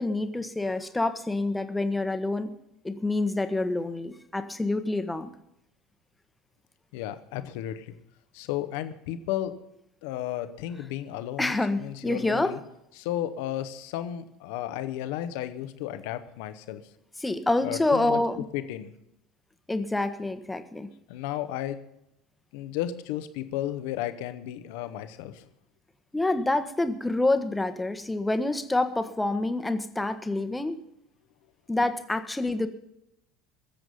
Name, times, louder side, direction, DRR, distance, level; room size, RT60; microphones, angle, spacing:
voice 1, 0.0-2.5 2.8-5.3 11.4-12.5 17.2-18.5 19.7-20.9 26.1-30.8 31.7-32.7, left 2 dB, 10° left, 8 dB, 1.3 m, -27 dB
voice 2, 6.9-7.9 8.3-9.5 10.0-12.6 13.0-16.8 17.6-18.2 18.5-18.9 21.1-21.8 22.5-25.5, left 12 dB, 60° left, 10 dB, 1.1 m, -33 dB
21.5 x 7.7 x 5.4 m, 0.81 s
figure-of-eight pair, 65°, 0 cm